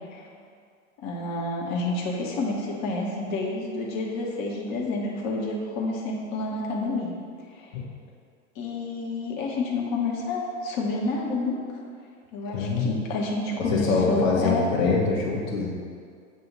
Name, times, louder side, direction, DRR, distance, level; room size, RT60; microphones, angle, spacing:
voice 1, 1.0-7.1 7.5-7.7 8.5-11.6 12.3-14.7, left 2 dB, 45° left, -2 dB, 1.2 m, -29 dB
voice 2, 12.5-13.0 13.6-15.7, left 4 dB, 75° left, -3 dB, 1.2 m, -24 dB
7.6 x 2.7 x 5.2 m, 2.1 s
hypercardioid pair, 95°, 40 cm